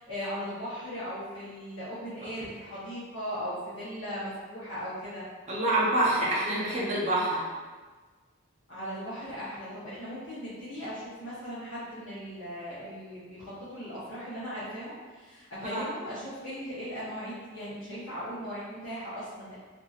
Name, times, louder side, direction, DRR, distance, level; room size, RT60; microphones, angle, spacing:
voice 1, 0.0-5.2 8.7-19.6, equal, 75° left, -13 dB, 0.9 m, -38 dB
voice 2, 5.5-7.4 15.7-15.8, right 1 dB, 35° right, -5 dB, 0.6 m, -26 dB
2.8 x 2.5 x 2.3 m, 1.4 s
head